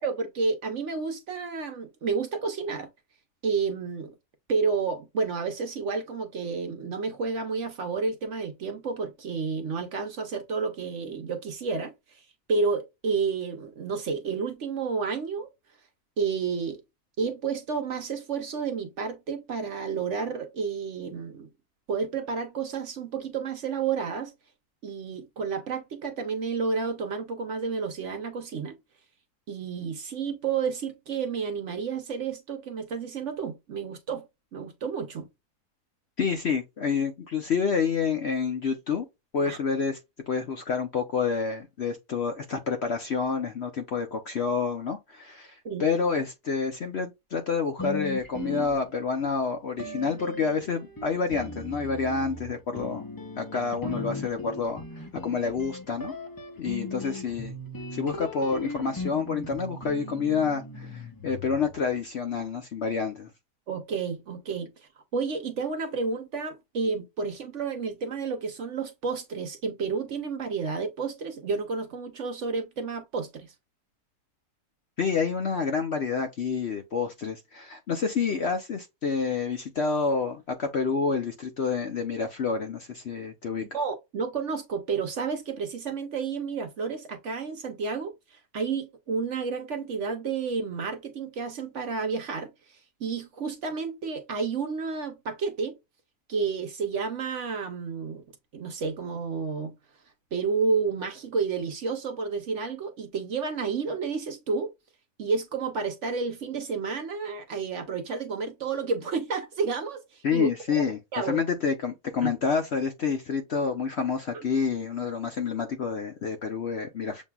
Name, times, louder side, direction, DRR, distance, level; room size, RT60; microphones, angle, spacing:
voice 1, 0.0-2.9 3.4-4.1 4.5-12.2 12.5-15.5 16.2-16.8 17.2-21.5 21.9-24.3 24.8-28.8 29.5-34.2 34.5-35.3 39.5-39.6 45.6-45.8 63.7-64.7 65.1-73.5 83.7-95.8 96.3-98.2 98.5-99.7 100.3-104.7 105.2-110.8 111.1-111.4 112.2-112.3, right 5 dB, 55° right, 0.9 m, -30 dB
voice 2, 36.2-39.1 39.3-40.0 40.3-53.1 53.4-56.1 56.6-57.6 57.9-63.3 75.0-83.6 110.2-117.2, left 5 dB, 55° left, 0.7 m, -28 dB
sound 1, 47.8-49.3 49.8-62.0, left 2 dB, 35° left, 0.3 m, -38 dB
7.1 x 2.7 x 2.3 m
omnidirectional pair, 1.7 m